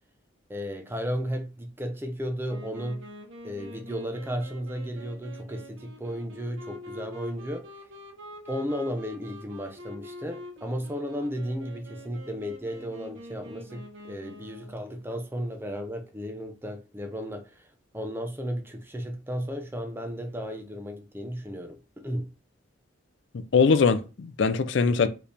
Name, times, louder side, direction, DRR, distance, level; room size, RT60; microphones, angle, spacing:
voice 1, 0.5-3.1 3.4-7.7 8.5-17.7 17.9-21.8 22.0-22.3 24.9-25.1, equal, 10° right, 0.5 m, -34 dB
Wind instrument woodwind instrument, 2.4-14.9, left 1 dB, 70° right, 1.0 m, -45 dB
voice 2, 23.3-25.1, left 5 dB, 65° left, 0.4 m, -22 dB
4.7 x 3.3 x 3.3 m
head